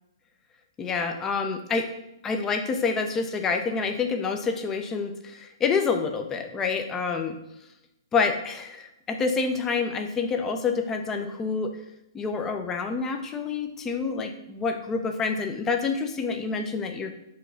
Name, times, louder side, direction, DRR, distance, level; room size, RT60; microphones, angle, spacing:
voice 1, 0.8-1.9 2.2-7.4 8.1-11.7 12.1-17.1, left 5 dB, 15° left, 5 dB, 0.7 m, -27 dB
4.8 x 3.9 x 5.7 m, 0.87 s
figure-of-eight pair, 115°, 2 cm